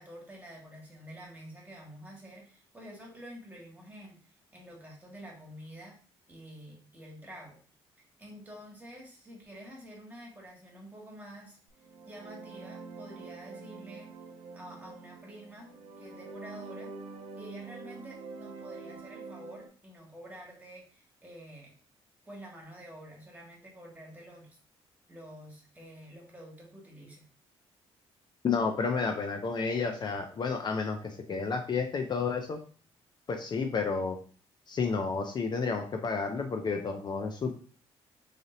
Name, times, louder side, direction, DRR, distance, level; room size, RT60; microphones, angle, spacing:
voice 1, 0.0-6.0 6.3-7.6 8.2-11.6 12.1-14.1 14.5-15.7 16.0-16.9 17.4-21.7 22.2-24.6 25.1-27.2, equal, 15° right, -2 dB, 1.7 m, -48 dB
sound 1, 11.8-19.7, right 4 dB, 80° right, 0.7 m, -46 dB
voice 2, 28.4-32.6 33.3-34.2 34.7-37.5, left 5 dB, 40° left, 4 dB, 0.6 m, -31 dB
3.7 x 3.3 x 2.7 m, 0.41 s
cardioid pair, 95°, 11 cm